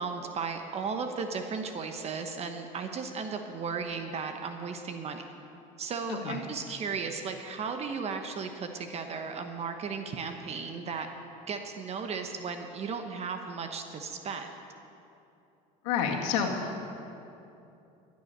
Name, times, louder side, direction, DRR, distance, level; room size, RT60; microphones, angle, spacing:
voice 1, 0.0-5.2 5.8-11.1 11.5-14.5, right 5 dB, 40° right, 6 dB, 1.0 m, -35 dB
voice 2, 6.1-6.4 15.8-16.8, left 6 dB, 80° left, 1 dB, 2.0 m, -29 dB
14.5 x 9.6 x 6.7 m, 2.8 s
supercardioid pair, 95°, 17 cm